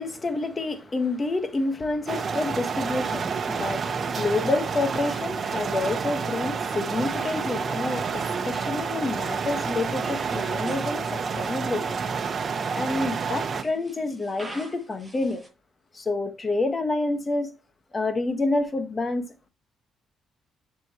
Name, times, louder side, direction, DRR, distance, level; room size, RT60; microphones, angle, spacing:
voice 1, 0.0-12.0 12.7-15.4 15.9-17.5 17.9-19.5, left 2 dB, 30° left, 1.4 m, -28 dB
sound 1, 2.1-13.6, right 5 dB, 45° right, 1.1 m, -29 dB
sound 2, 10.0-11.0 11.3-15.5, right 2 dB, 5° right, 6.0 m, -48 dB
10.5 x 6.3 x 3.0 m
cardioid pair, 90°, 0 cm